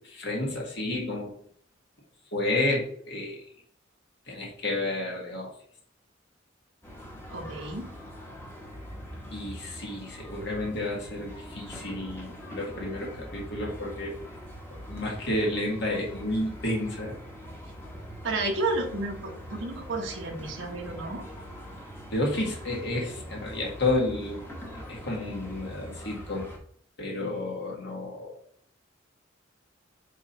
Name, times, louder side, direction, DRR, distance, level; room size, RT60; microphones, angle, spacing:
voice 1, 0.0-1.3 2.3-3.4 4.3-5.5 9.3-14.2 14.9-17.1 22.1-24.4 24.9-26.5 27.0-28.4, left 2 dB, 60° left, -3 dB, 1.6 m, -31 dB
sound 1, 6.8-26.6, equal, 10° left, 1.2 m, -42 dB
voice 2, 7.3-7.9 18.2-21.2, right 2 dB, 80° right, 0 dB, 1.2 m, -31 dB
4.5 x 4.3 x 5.4 m, 0.62 s
head